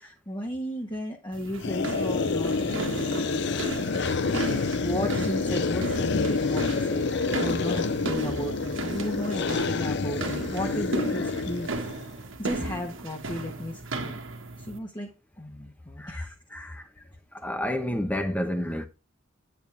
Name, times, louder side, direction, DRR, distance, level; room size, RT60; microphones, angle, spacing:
voice 1, 0.0-7.1 7.4-11.7 12.4-14.1 14.6-15.1 15.4-16.6 17.0-17.1, equal, 25° left, 1.4 m, -35 dB
sound 1, 1.3-14.8, right 2 dB, 75° right, 1.6 m, -36 dB
sound 2, 1.6-12.1, left 4 dB, 60° left, 0.6 m, -28 dB
voice 2, 3.5-4.3 7.1-7.4 11.1-11.3 16.0-16.8 17.3-18.9, left 1 dB, 10° left, 1.0 m, -32 dB
9.1 x 7.0 x 3.3 m
head